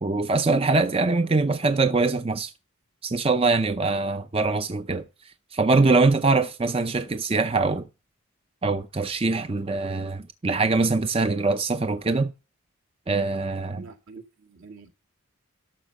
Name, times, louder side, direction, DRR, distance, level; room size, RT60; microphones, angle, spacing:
voice 1, 0.0-2.5 3.0-7.9 8.6-12.3 13.1-13.8, right 3 dB, 25° right, 0.5 m, -23 dB
voice 2, 13.8-14.9, right 4 dB, 70° right, 2.1 m, -46 dB
12.0 x 6.7 x 6.4 m
head